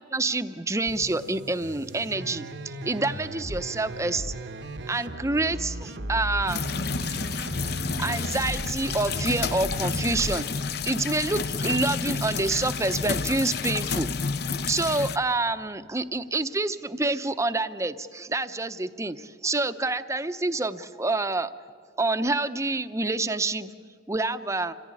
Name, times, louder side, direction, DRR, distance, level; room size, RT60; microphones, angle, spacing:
voice 1, 0.0-4.3 4.9-6.6 8.0-10.5 10.8-14.1 14.7-21.5 22.0-23.7 24.1-24.7, right 2 dB, 15° right, 12 dB, 0.7 m, -27 dB
sound 1, 0.9-10.4, right 1 dB, 75° right, 1.0 m, -36 dB
sound 2, 6.5-15.2, left 5 dB, 60° left, 0.8 m, -30 dB
27.5 x 15.0 x 9.6 m, 2.1 s
head